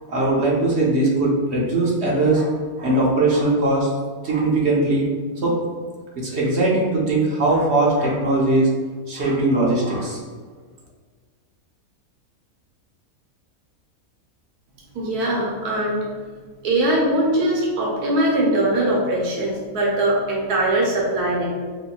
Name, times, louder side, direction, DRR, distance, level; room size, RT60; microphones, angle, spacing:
voice 1, 0.1-2.5 2.8-3.9 4.2-5.1 5.4-5.5 6.2-8.7 9.1-10.2, right 2 dB, 50° right, -4 dB, 1.0 m, -20 dB
voice 2, 14.9-16.0 16.6-21.5, right 1 dB, 85° right, -3 dB, 1.3 m, -21 dB
5.2 x 2.8 x 2.3 m, 1.5 s
omnidirectional pair, 1.6 m